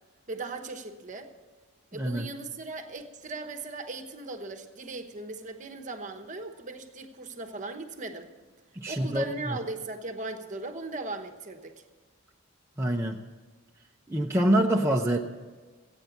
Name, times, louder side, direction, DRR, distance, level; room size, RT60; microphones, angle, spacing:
voice 1, 0.3-1.3 1.9-8.3 8.9-11.7, right 3 dB, 35° right, 5 dB, 1.0 m, -38 dB
voice 2, 1.9-2.3 8.8-9.6 12.8-13.2 14.1-15.2, right 1 dB, 10° right, -1 dB, 0.6 m, -25 dB
15.0 x 9.1 x 7.1 m, 1.4 s
head